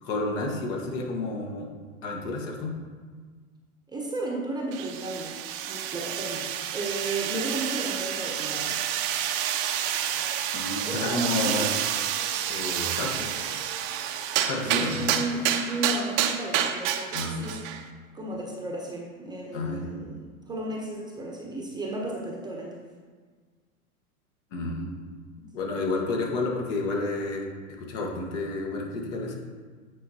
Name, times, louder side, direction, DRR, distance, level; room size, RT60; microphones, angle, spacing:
voice 1, 0.0-1.7 2.0-2.7 10.5-11.7 12.5-13.3 14.5-15.1 17.1-17.4 19.5-19.9 24.5-25.0 25.5-27.5 27.8-29.3, left 2 dB, 55° left, 0 dB, 1.6 m, -30 dB
voice 2, 3.9-8.8 10.8-11.7 14.6-17.6 18.1-22.8, right 2 dB, 10° right, -2 dB, 0.8 m, -34 dB
sound 1, 4.7-17.8, right 10 dB, 35° right, 0.5 m, -29 dB
9.3 x 5.1 x 2.9 m, 1.5 s
hypercardioid pair, 105°, 43 cm